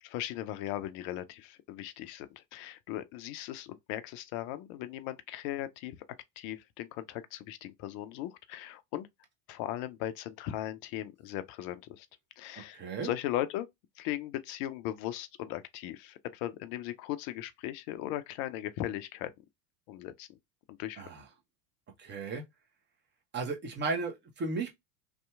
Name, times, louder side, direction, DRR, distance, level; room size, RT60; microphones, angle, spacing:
voice 1, 0.0-6.1 6.4-9.1 9.5-12.1 12.4-13.7 14.0-19.4 19.9-20.3 20.7-21.0, left 13 dB, 40° left, 0.4 m, -38 dB
voice 2, 12.7-13.1 21.0-21.2 22.0-22.4 23.3-24.7, right 4 dB, 25° right, 0.8 m, -34 dB
2.7 x 2.3 x 2.3 m
figure-of-eight pair, 75°, 47 cm